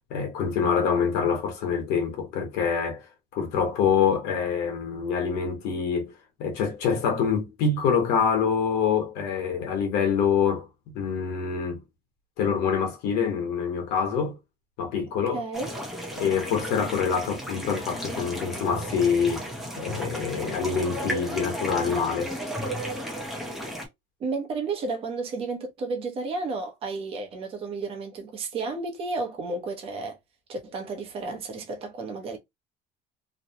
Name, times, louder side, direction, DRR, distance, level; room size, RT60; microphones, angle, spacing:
voice 1, 0.1-3.1 3.3-6.1 6.4-10.7 10.9-11.8 12.4-14.4 14.8-15.4 16.2-19.5 19.8-22.3, left 6 dB, 75° left, 1.2 m, -25 dB
voice 2, 15.3-15.7 24.2-30.2 30.5-32.4, right 3 dB, 35° right, 0.8 m, -32 dB
sound 1, 15.5-23.9, equal, ahead, 0.7 m, -34 dB
3.0 x 2.1 x 2.8 m
cardioid pair, 175°, 17 cm